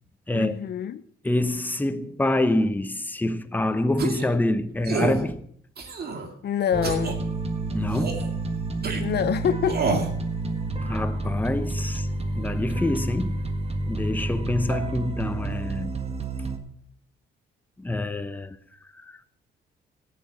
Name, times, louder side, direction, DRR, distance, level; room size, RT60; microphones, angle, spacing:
voice 1, 0.3-1.0 6.4-7.2 9.0-9.8, left 9 dB, 55° left, 0.7 m, -26 dB
voice 2, 1.2-5.4 7.7-8.2 10.8-12.1 12.4-13.4 13.9-15.9 17.8-18.6 19.1-19.2, left 1 dB, 10° left, 0.9 m, -26 dB
sound 1, 4.0-4.3 4.8-5.2 5.8-6.3 6.8-7.1 7.9-8.3 8.8-9.0 9.7-10.1, right 4 dB, 55° right, 2.1 m, -28 dB
sound 2, 6.7-16.6, right 2 dB, 30° right, 1.6 m, -29 dB
14.0 x 9.5 x 6.0 m
cardioid pair, 90°, 20 cm